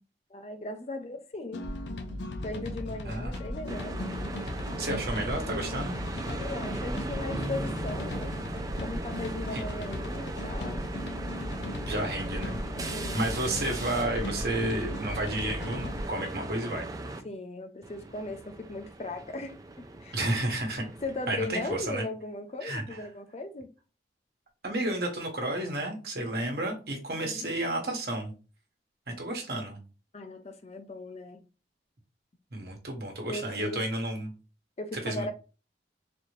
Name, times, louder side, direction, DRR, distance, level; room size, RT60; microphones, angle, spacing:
voice 1, 0.3-1.6 2.4-4.0 6.3-8.3 8.8-10.8 12.9-13.2 17.2-20.2 21.0-23.7 27.2-27.5 30.1-31.4 33.2-33.8 34.8-35.3, left 2 dB, 35° left, 0.5 m, -38 dB
sound 1, 1.5-16.1, left 1 dB, 85° left, 0.6 m, -36 dB
sound 2, 3.3-3.4 3.7-17.2 17.8-21.8, right 2 dB, 20° right, 0.4 m, -38 dB
voice 2, 4.8-6.0 9.5-9.6 11.9-12.6 13.1-16.9 20.1-20.8 21.3-22.0 22.6-22.8 24.6-28.3 29.2-29.8 32.5-34.3 35.0-35.3, right 1 dB, 60° right, 1.2 m, -31 dB
4.1 x 2.7 x 3.1 m
head